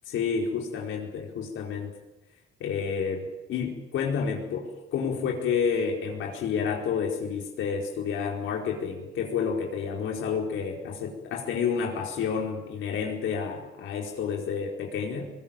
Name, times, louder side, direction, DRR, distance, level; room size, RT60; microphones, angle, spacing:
voice 1, 0.1-1.9 2.6-15.3, left 6 dB, 80° left, 1 dB, 4.6 m, -30 dB
21.5 x 20.0 x 9.0 m, 1.0 s
cardioid pair, 90°, 20 cm